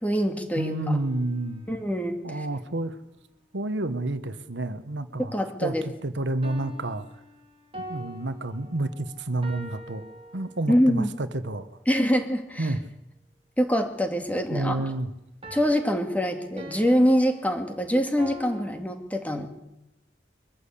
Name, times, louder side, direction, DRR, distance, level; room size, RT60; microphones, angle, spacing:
voice 1, 0.0-1.0 1.7-2.5 5.2-5.8 10.7-11.1 11.9-12.7 13.6-14.8 15.5-19.5, equal, 10° left, 5 dB, 2.2 m, -24 dB
sound 1, 0.6-1.9 6.4-11.0 15.4-18.7, equal, 30° right, 2.4 m, -44 dB
voice 2, 0.6-1.6 2.2-3.0 3.5-5.3 5.6-7.1 7.9-10.0 10.3-11.7 12.6-12.8 14.5-15.1, right 2 dB, 80° right, 11 dB, 1.3 m, -29 dB
23.0 x 14.0 x 8.5 m, 0.89 s
head